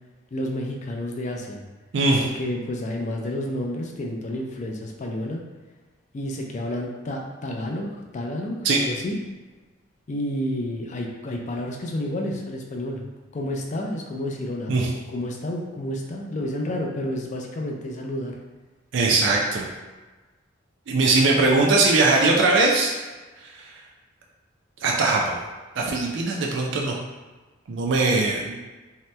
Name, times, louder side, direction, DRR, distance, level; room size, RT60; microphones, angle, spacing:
voice 1, 0.3-1.6 2.2-5.4 6.1-9.2 10.1-13.1 13.3-14.7 15.1-18.3, left 1 dB, 40° left, 1 dB, 0.4 m, -30 dB
voice 2, 1.9-2.3 8.6-8.8 14.7-14.9 18.9-19.7 20.9-22.9 23.5-23.7 24.8-25.4 25.8-26.9 27.7-28.6, right 3 dB, 65° right, -1 dB, 0.4 m, -20 dB
2.8 x 2.1 x 3.2 m, 1.2 s
head